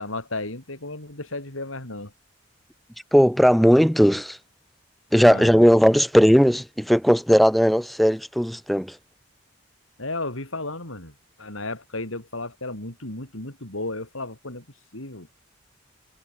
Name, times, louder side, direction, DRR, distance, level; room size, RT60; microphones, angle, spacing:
voice 1, 0.0-2.1 5.3-5.6 10.0-14.6 14.9-15.3, left 2 dB, 90° left, 6.2 m, -34 dB
voice 2, 3.1-4.4 5.1-9.0, equal, ahead, 2.2 m, -17 dB
head